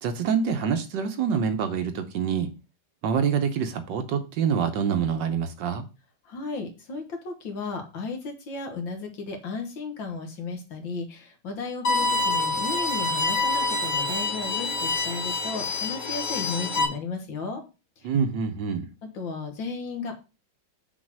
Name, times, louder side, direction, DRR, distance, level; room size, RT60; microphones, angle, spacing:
voice 1, 0.0-2.5 3.0-5.8 18.0-18.9, right 6 dB, 70° right, 1.3 m, -26 dB
voice 2, 6.3-17.6 19.1-20.1, left 4 dB, 65° left, 2.2 m, -34 dB
Bowed string instrument, 11.8-16.8, left 3 dB, 45° left, 1.4 m, -26 dB
6.3 x 4.2 x 6.0 m
omnidirectional pair, 2.2 m